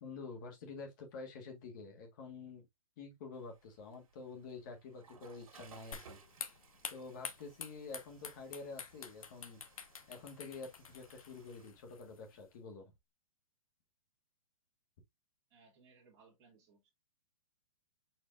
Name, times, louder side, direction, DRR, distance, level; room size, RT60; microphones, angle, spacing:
voice 1, 0.0-2.7 3.0-6.2 6.9-9.6 10.1-12.9, left 4 dB, 35° left, 1.5 m, -48 dB
Water / Toilet flush, 3.3-11.7, right 5 dB, 85° right, 1.5 m, -62 dB
sound 1, 5.9-12.5, left 7 dB, 75° left, 1.0 m, -49 dB
voice 2, 15.5-16.9, right 4 dB, 20° right, 1.8 m, -64 dB
4.7 x 4.5 x 2.4 m
hypercardioid pair, 170°, 18 cm